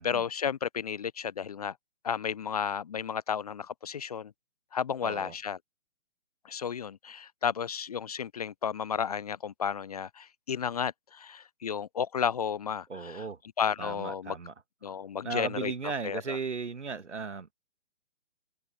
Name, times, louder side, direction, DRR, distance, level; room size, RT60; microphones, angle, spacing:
voice 1, 0.0-1.7 2.0-4.3 4.7-5.6 6.4-13.2 13.6-14.3 14.8-16.4, left 7 dB, 35° left, 0.5 m, -33 dB
voice 2, 5.0-5.3 12.9-13.4 13.8-14.5 15.2-17.5, right 4 dB, 75° right, 1.6 m, -36 dB
figure-of-eight pair, 130°, 35 cm